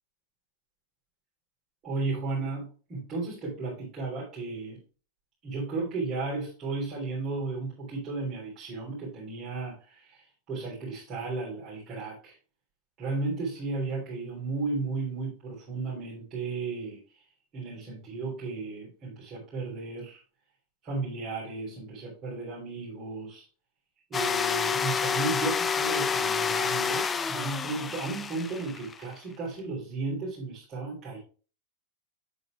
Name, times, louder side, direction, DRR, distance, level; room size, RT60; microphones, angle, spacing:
voice 1, 1.8-4.8 5.4-12.4 13.0-17.0 17.5-20.2 20.8-23.4 24.1-31.2, right 3 dB, 30° right, -7 dB, 3.5 m, -34 dB
sound 1, 24.1-29.1, left 6 dB, 20° left, 0.5 m, -29 dB
7.9 x 7.9 x 2.3 m, 0.37 s
figure-of-eight pair, 90°, 0 cm